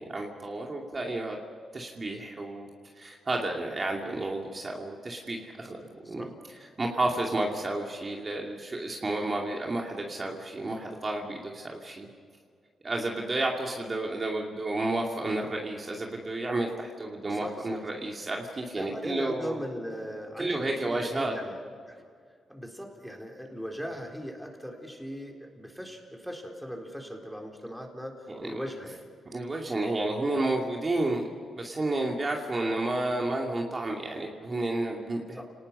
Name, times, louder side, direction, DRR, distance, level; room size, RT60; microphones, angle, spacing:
voice 1, 0.0-1.4 1.7-2.7 3.0-5.8 6.1-6.3 6.8-12.1 12.8-19.6 20.4-21.3 28.3-28.6 29.3-31.3 31.6-35.4, right 2 dB, 35° right, 0 dB, 2.5 m, -31 dB
voice 2, 17.3-17.8 18.8-21.6 21.9-22.0 22.5-29.0 35.3-35.4, equal, ahead, 1 dB, 4.1 m, -39 dB
30.0 x 19.0 x 5.6 m, 2.1 s
cardioid pair, 85°, 0 cm